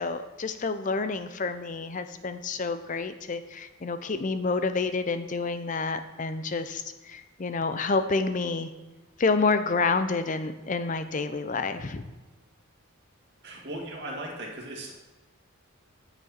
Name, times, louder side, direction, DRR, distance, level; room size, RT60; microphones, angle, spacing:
voice 1, 0.0-8.7 9.2-12.1, left 4 dB, 35° left, 10 dB, 0.5 m, -29 dB
voice 2, 13.4-14.9, right 1 dB, 50° right, -2 dB, 2.1 m, -37 dB
9.3 x 6.1 x 4.3 m, 1.2 s
head